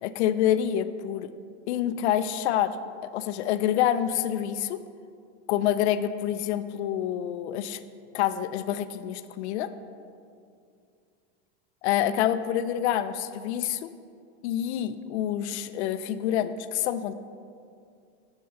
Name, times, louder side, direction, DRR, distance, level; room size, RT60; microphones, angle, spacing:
voice 1, 0.0-1.3 1.7-2.8 3.0-4.8 5.5-7.8 8.1-9.7 11.8-13.9 14.4-17.1, left 11 dB, 80° left, 12 dB, 0.5 m, -27 dB
7.0 x 4.5 x 6.4 m, 2.3 s
supercardioid pair, 150°, 33 cm